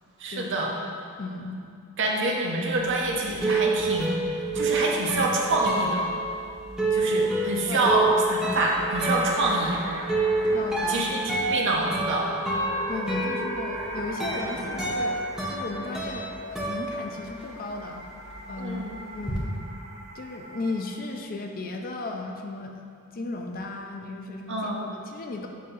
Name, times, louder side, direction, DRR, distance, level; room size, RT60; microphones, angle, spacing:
voice 1, 0.2-0.7 2.0-4.2 4.5-6.1 6.9-9.8 10.9-11.2 11.5-12.3 18.6-18.9 24.5-24.8, right 2 dB, 55° right, -1 dB, 0.9 m, -26 dB
voice 2, 1.2-1.6 7.7-7.9 10.5-11.1 12.9-15.2 15.5-16.3 16.7-18.1 18.5-18.9 19.1-19.6 20.1-22.8 23.1-25.5, left 2 dB, 40° left, 3 dB, 0.5 m, -35 dB
sound 1, 2.8-17.7 17.9-19.4, right 2 dB, 5° right, 0.8 m, -28 dB
sound 2, 7.8-21.2, right 1 dB, 75° right, 1.5 m, -39 dB
7.5 x 2.7 x 5.5 m, 2.4 s
head